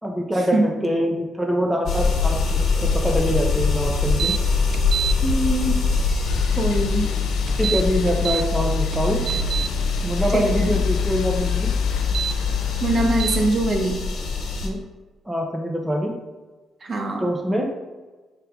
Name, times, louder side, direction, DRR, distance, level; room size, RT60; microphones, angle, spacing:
voice 1, 0.0-4.3 7.5-9.2 10.0-11.7 14.6-14.8 15.3-16.1 17.2-17.6, equal, 5° right, 0 dB, 1.0 m, -24 dB
sound 1, 1.9-14.7, left 4 dB, 65° left, 1.2 m, -24 dB
sound 2, 4.2-4.4 4.7-5.1 7.5-8.4 8.9-9.7 12.0-12.3 13.2-13.4, right 9 dB, 60° right, 0.3 m, -26 dB
voice 2, 5.2-5.8 6.5-7.1 10.3-10.8 12.8-14.0 16.8-17.3, right 2 dB, 45° right, 2 dB, 1.1 m, -23 dB
sound 3, 6.3-13.5, left 6 dB, 90° left, 0.3 m, -25 dB
5.5 x 3.9 x 5.1 m, 1.3 s
cardioid pair, 90°, 0 cm